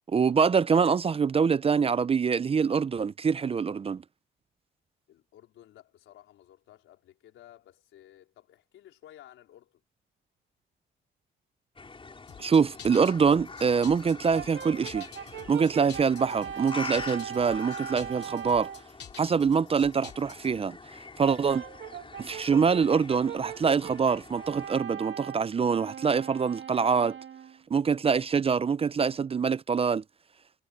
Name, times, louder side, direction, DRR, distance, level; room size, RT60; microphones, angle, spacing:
voice 1, 0.1-4.0 12.4-15.1 15.5-18.7 19.2-20.8 21.2-21.6 22.2-27.2 27.7-30.0, right 6 dB, 30° right, 0.5 m, -25 dB
voice 2, 5.1-9.8, left 12 dB, 80° left, 4.4 m, -54 dB
sound 1, 11.8-24.7, left 4 dB, 25° left, 5.0 m, -45 dB
sound 2, 12.3-20.6, left 8 dB, 60° left, 2.6 m, -48 dB
Brass instrument, 14.3-18.9 21.2-27.6, right 9 dB, 65° right, 2.8 m, -40 dB
cardioid pair, 90°, 20 cm